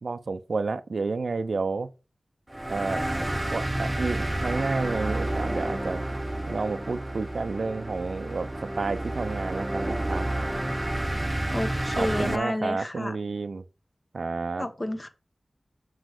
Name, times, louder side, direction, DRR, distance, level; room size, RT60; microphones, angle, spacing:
voice 1, 0.0-1.9 2.7-3.0 3.5-6.0 6.5-8.5 8.8-10.3 12.0-13.6 14.1-14.7, right 4 dB, 75° right, 0.6 m, -30 dB
sound 1, 2.5-12.4, right 1 dB, 20° right, 0.6 m, -30 dB
voice 2, 11.5-13.2 14.6-15.1, left 1 dB, 30° left, 1.0 m, -30 dB
6.2 x 4.4 x 6.5 m
wide cardioid pair, 75°, 0 cm